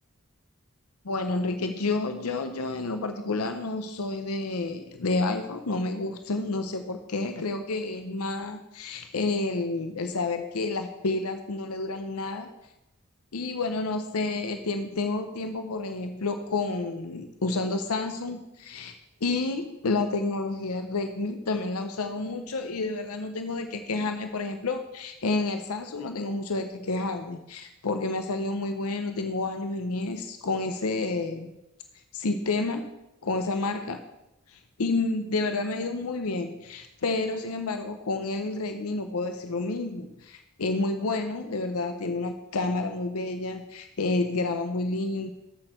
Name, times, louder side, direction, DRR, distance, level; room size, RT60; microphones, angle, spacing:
voice 1, 1.0-12.5 13.3-18.9 19.2-31.5 32.1-32.8 33.2-34.0 34.5-45.3, left 3 dB, 80° left, 7 dB, 0.7 m, -30 dB
13.0 x 6.3 x 4.4 m, 0.90 s
head